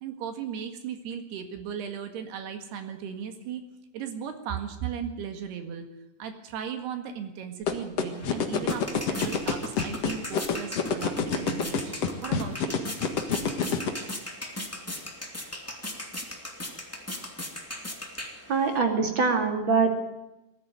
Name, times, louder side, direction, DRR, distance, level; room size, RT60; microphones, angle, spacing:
voice 1, 0.0-3.6 3.9-5.9 6.2-11.9 12.2-12.9, right 8 dB, 75° right, 6 dB, 3.8 m, -36 dB
sound 1, 7.7-13.9, left 7 dB, 50° left, 2.1 m, -25 dB
sound 2, 8.1-18.8, left 1 dB, 5° left, 1.7 m, -38 dB
voice 2, 18.5-19.9, right 4 dB, 35° right, 4 dB, 2.8 m, -23 dB
20.5 x 14.0 x 9.4 m, 0.96 s
omnidirectional pair, 4.7 m